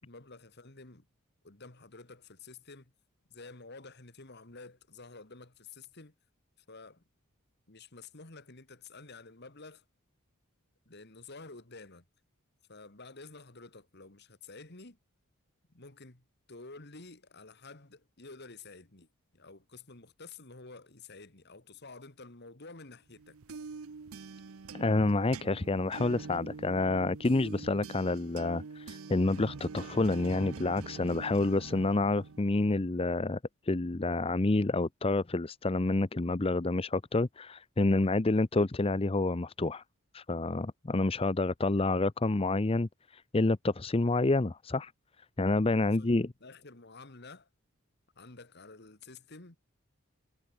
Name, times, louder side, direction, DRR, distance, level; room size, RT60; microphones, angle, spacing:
voice 1, 0.0-1.1 1.4-2.9 3.3-6.1 6.7-7.0 7.7-9.8 10.9-12.0 12.7-15.0 15.7-23.4 45.8-47.5 48.2-49.6, left 3 dB, 50° left, 2.3 m, -50 dB
sound 1, 23.2-32.8, right 4 dB, 75° right, 0.7 m, -45 dB
voice 2, 24.7-33.4 33.6-39.8 40.1-44.9 45.4-46.3, left 2 dB, 25° left, 0.6 m, -28 dB
head